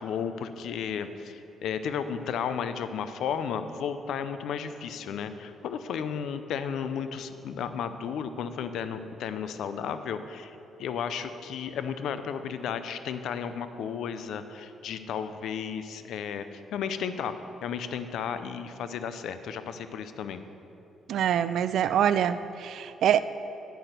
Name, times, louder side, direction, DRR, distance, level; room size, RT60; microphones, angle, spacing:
voice 1, 0.0-16.4 16.7-17.4 17.6-20.4, left 7 dB, 75° left, 10 dB, 0.5 m, -33 dB
voice 2, 21.1-23.2, right 9 dB, 70° right, 14 dB, 0.3 m, -25 dB
9.1 x 6.0 x 6.6 m, 2.9 s
cardioid pair, 90°, 0 cm